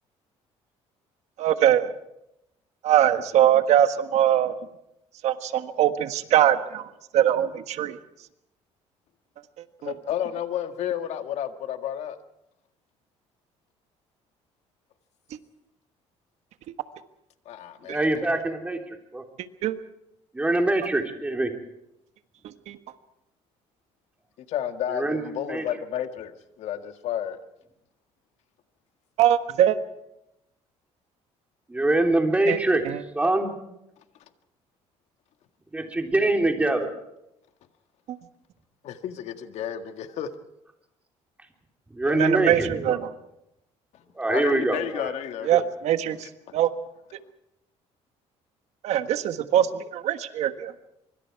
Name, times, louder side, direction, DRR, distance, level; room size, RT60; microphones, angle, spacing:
voice 1, 1.4-1.9 2.8-4.5 5.2-6.8 7.1-8.0 9.8-9.9 19.6-19.7 22.7-22.8 29.2-29.8 32.5-32.6 32.8-33.0 42.1-43.0 45.5-46.2 46.5-46.7 48.8-50.7, right 11 dB, 65° right, 10 dB, 1.5 m, -22 dB
voice 2, 9.8-12.2 17.5-18.4 24.5-27.4 38.8-40.3 44.3-45.5 46.2-46.3, left 10 dB, 65° left, 8 dB, 1.8 m, -31 dB
voice 3, 17.9-19.2 20.3-21.5 24.9-25.6 31.7-32.8 33.1-33.5 35.7-36.9 41.9-43.0 44.2-45.1 45.5-45.6, right 2 dB, 10° right, 3 dB, 3.5 m, -24 dB
25.0 x 24.0 x 4.7 m, 0.85 s
cardioid pair, 120°, 12 cm